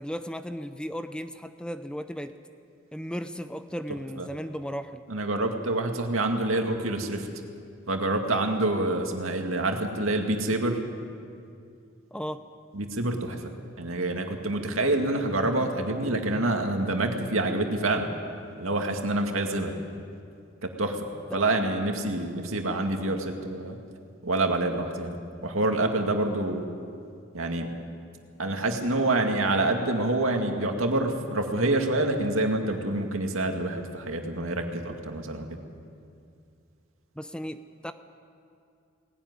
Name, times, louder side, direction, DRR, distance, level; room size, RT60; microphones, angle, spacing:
voice 1, 0.0-2.4 2.9-5.0 12.1-12.4 21.3-21.4 37.2-37.9, equal, 5° left, 10 dB, 0.6 m, -35 dB
voice 2, 5.1-7.3 7.9-10.8 12.7-18.1 18.6-19.7 20.6-21.0 21.3-23.8 24.2-25.2 25.4-26.7 27.3-27.7 28.4-35.6, right 2 dB, 85° right, 3 dB, 2.2 m, -27 dB
19.5 x 17.0 x 9.7 m, 2.4 s
head